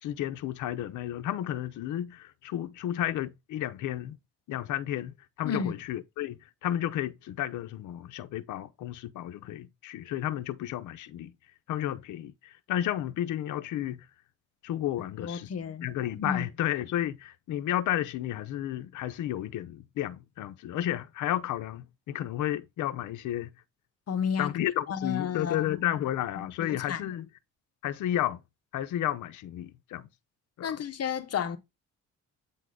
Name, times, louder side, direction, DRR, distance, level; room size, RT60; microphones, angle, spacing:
voice 1, 0.0-4.2 4.5-11.3 11.7-14.1 14.6-15.5 15.8-23.5 24.4-27.3 27.8-28.4 28.7-30.1 30.6-30.8, left 12 dB, 80° left, 0.7 m, -32 dB
voice 2, 5.4-5.8 15.2-16.4 24.1-24.5 24.9-25.9 26.4-27.1 30.6-31.6, left 7 dB, 55° left, 1.1 m, -32 dB
8.5 x 3.7 x 3.7 m
cardioid pair, 90°, 30 cm